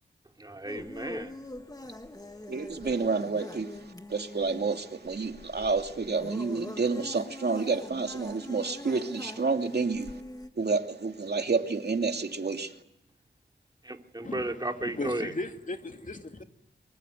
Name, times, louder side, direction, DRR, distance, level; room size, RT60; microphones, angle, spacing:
voice 1, 0.4-1.3 13.8-15.3, right 2 dB, 20° right, 2.9 m, -34 dB
sound 1, 0.7-10.5, left 1 dB, 20° left, 1.8 m, -44 dB
voice 2, 2.5-10.2 10.6-12.7, right 4 dB, 60° right, 2.7 m, -29 dB
voice 3, 14.9-16.4, left 2 dB, 45° left, 2.6 m, -36 dB
24.5 x 23.5 x 9.5 m
wide cardioid pair, 75°, 19 cm